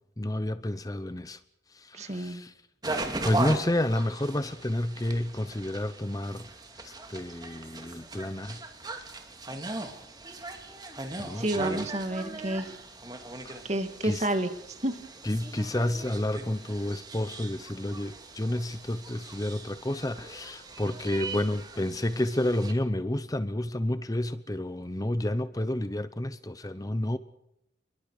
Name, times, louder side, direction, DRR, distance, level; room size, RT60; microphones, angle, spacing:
voice 1, 0.2-1.4 1.7-2.5 3.2-6.5 6.8-8.6 11.2-11.9 13.4-13.6 14.0-14.3 15.2-27.2, left 1 dB, 20° left, 0.8 m, -30 dB
voice 2, 1.9-2.4 11.1-12.7 13.6-14.5 14.8-15.0, right 1 dB, 35° right, 2.3 m, -30 dB
sound 1, 2.8-22.7, right 2 dB, 20° right, 2.7 m, -39 dB
29.0 x 22.5 x 4.9 m
head